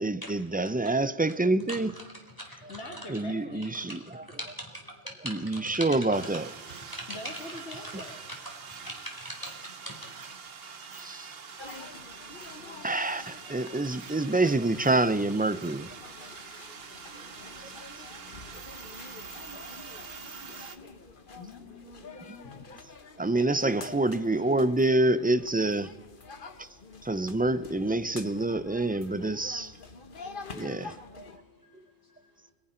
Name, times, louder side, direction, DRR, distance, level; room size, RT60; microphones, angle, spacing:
voice 1, 0.0-1.9 2.6-2.7 3.1-4.2 5.2-6.5 10.9-11.3 12.8-16.0 17.6-17.8 19.5-19.6 20.6-20.7 22.3-22.7 23.2-25.9 26.6-26.7 27.0-29.8 30.5-31.4 31.7-31.8, right 2 dB, 10° right, 0.4 m, -27 dB
voice 2, 1.7-2.0 2.4-2.8 3.9-6.2 6.9-7.1 8.4-10.0 10.4-10.5 11.0-11.4 11.9-12.0 12.5-12.9 16.7-16.8 17.6-18.9 19.5-20.9 22.1-22.8 26.8-26.9 30.4-30.6 31.2-32.5, equal, 20° left, 4.0 m, -44 dB
voice 3, 2.5-3.8 7.1-8.2 21.4-22.0 23.5-24.0 32.0-32.1, left 2 dB, 85° left, 2.3 m, -44 dB
sound 1, 6.1-20.8, right 5 dB, 60° right, 1.3 m, -45 dB
sound 2, 11.6-31.4, left 4 dB, 50° left, 1.4 m, -47 dB
30.0 x 21.5 x 4.4 m
omnidirectional pair, 1.1 m